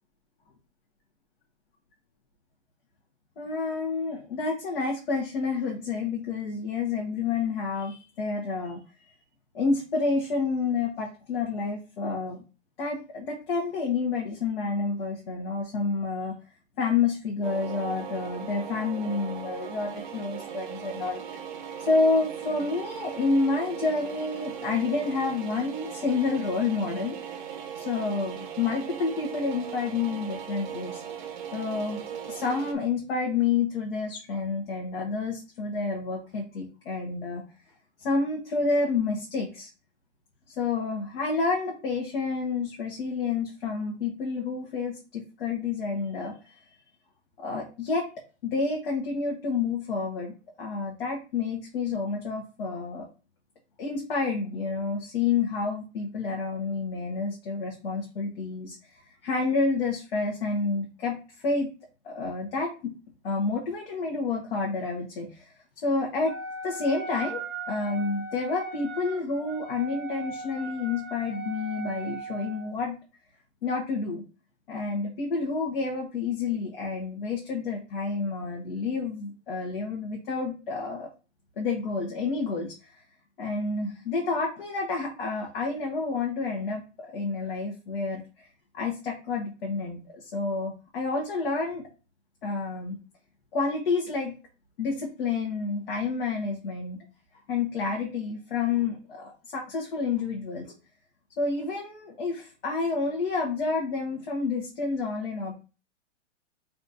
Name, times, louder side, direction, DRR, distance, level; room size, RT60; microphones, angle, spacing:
voice 1, 3.4-8.8 9.5-12.4 12.8-16.3 16.8-21.4 21.8-27.4 27.7-31.0 31.5-32.0 32.3-37.4 38.0-39.7 40.5-46.3 47.4-48.0 48.4-53.0 53.8-58.7 59.2-61.7 62.0-62.9 63.2-65.5 65.8-66.3 66.6-67.4 67.7-72.9 73.6-74.2 74.7-81.1 81.6-83.0 83.4-88.5 88.7-91.8 92.4-93.0 93.5-94.3 94.8-97.0 97.5-100.7 101.4-105.5, left 4 dB, 50° left, -1 dB, 1.3 m, -29 dB
sound 1, 17.4-32.7, right 8 dB, 40° right, 0.7 m, -38 dB
Wind instrument woodwind instrument, 66.3-72.7, right 4 dB, ahead, 1.0 m, -38 dB
4.2 x 2.6 x 4.1 m, 0.33 s
hypercardioid pair, 165°, 37 cm